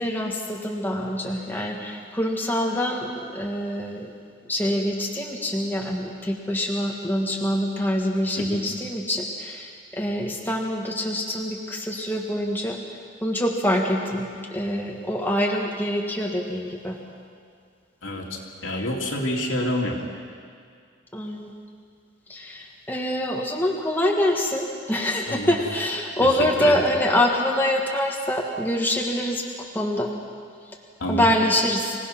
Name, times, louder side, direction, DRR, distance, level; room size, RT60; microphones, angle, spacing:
voice 1, 0.0-4.1 4.5-12.8 13.2-17.0 21.1-21.5 22.3-29.4 29.7-30.1 31.1-31.9, left 1 dB, 10° left, -1 dB, 1.6 m, -25 dB
voice 2, 18.0-20.0 25.3-25.5 26.2-26.3 26.6-26.8 31.0-31.3, left 1 dB, 80° left, -1 dB, 3.0 m, -27 dB
25.5 x 17.5 x 6.0 m, 2.1 s
head